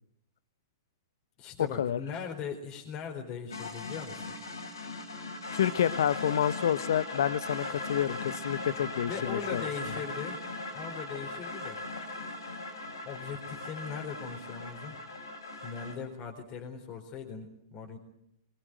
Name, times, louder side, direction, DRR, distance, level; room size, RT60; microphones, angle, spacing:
voice 1, 1.4-4.3 8.9-10.4 10.7-11.8 13.0-15.0 15.6-18.0, left 6 dB, 35° left, 2 dB, 4.1 m, -40 dB
sound 1, 3.5-15.9, left 2 dB, 85° left, 6.6 m, -39 dB
voice 2, 5.5-9.6, left 10 dB, 65° left, 17 dB, 1.0 m, -29 dB
23.0 x 19.5 x 9.2 m, 0.77 s
hypercardioid pair, 110°, 2 cm